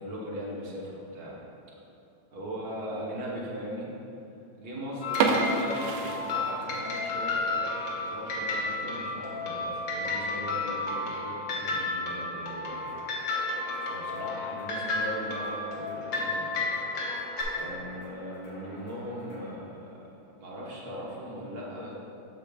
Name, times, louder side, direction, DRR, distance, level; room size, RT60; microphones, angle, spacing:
voice 1, 0.0-1.3 2.3-3.9 4.6-13.0 13.3-13.4 13.8-16.6 17.5-21.9, equal, 55° right, -5 dB, 1.5 m, -39 dB
sound 1, 5.0-17.4, left 2 dB, 70° left, 1.6 m, -32 dB
sound 2, 5.1-7.0 7.3-7.4 7.9-8.1 8.5-8.6 8.9-9.0 9.7-10.1, right 4 dB, 75° right, 1.3 m, -28 dB
sound 3, 12.7-19.5, left 1 dB, 85° left, 2.2 m, -48 dB
8.2 x 6.6 x 2.3 m, 2.7 s
omnidirectional pair, 2.2 m